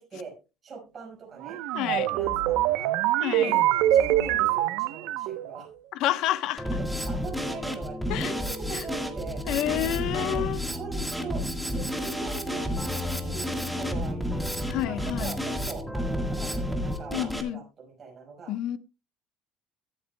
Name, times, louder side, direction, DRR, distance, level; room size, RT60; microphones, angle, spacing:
voice 1, 0.6-1.6 1.9-2.9 3.4-3.6 3.9-5.7 6.7-9.4 10.1-11.4 11.7-14.5 14.9-18.5, right 5 dB, 25° right, 5.4 m, -41 dB
sound 1, 1.4-5.6, right 13 dB, 80° right, 0.8 m, -24 dB
voice 2, 1.7-2.1 3.2-3.6 5.9-6.7 8.1-8.3 8.7-8.8 9.5-10.6 14.7-15.3 17.1-17.6 18.5-18.8, left 13 dB, 60° left, 0.9 m, -29 dB
Drum kit, 6.6-17.4, equal, ahead, 1.6 m, -31 dB
22.0 x 8.0 x 2.2 m
cardioid pair, 165°, 0 cm